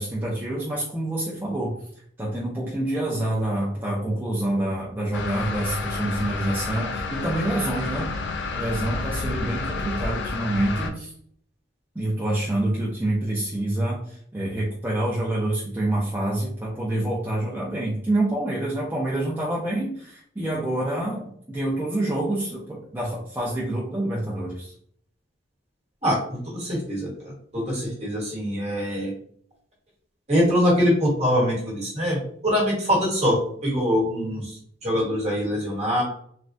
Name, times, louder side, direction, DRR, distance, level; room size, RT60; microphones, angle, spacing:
voice 1, 0.0-1.7 2.2-8.1 8.5-11.1 11.9-24.7, right 1 dB, 10° right, -6 dB, 0.5 m, -27 dB
sound 1, 5.1-10.9, left 3 dB, 65° left, 0.4 m, -30 dB
voice 2, 26.0-27.1 27.5-29.1 30.3-34.5 34.8-36.0, equal, 35° right, -4 dB, 1.3 m, -23 dB
3.2 x 2.3 x 2.6 m, 0.63 s
head